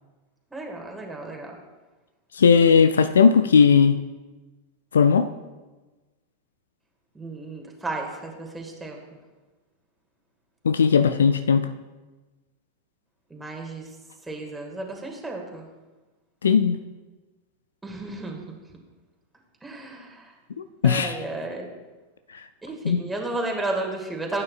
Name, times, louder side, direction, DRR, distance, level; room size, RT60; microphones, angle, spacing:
voice 1, 0.5-1.6 7.1-9.2 13.3-13.9 14.2-15.7 17.8-18.4 19.6-20.3 20.8-21.7 22.6-24.4, right 2 dB, 10° right, 0 dB, 1.9 m, -33 dB
voice 2, 2.4-4.0 4.9-5.3 10.6-11.7 16.4-16.8 20.6-21.1 22.8-23.0, left 6 dB, 70° left, 11 dB, 0.4 m, -17 dB
15.5 x 8.7 x 2.4 m, 1.2 s
figure-of-eight pair, 90°, 0 cm